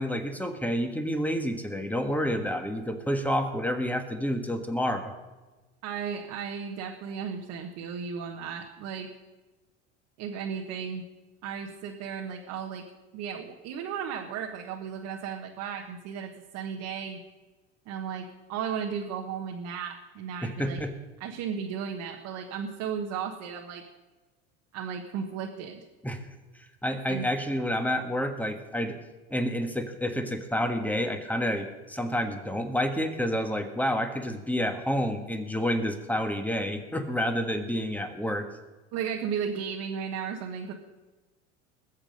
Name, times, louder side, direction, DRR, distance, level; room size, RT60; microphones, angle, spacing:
voice 1, 0.0-5.1 20.4-20.9 26.0-26.2 26.8-29.0 29.3-38.5, equal, 5° left, 6 dB, 1.6 m, -29 dB
voice 2, 5.8-9.1 10.2-11.0 11.4-12.8 13.1-17.2 17.9-20.8 21.2-23.8 24.7-25.8 27.1-27.3 38.9-40.7, right 7 dB, 60° right, 1 dB, 1.5 m, -35 dB
20.5 x 7.5 x 5.3 m, 1.2 s
supercardioid pair, 105°, 33 cm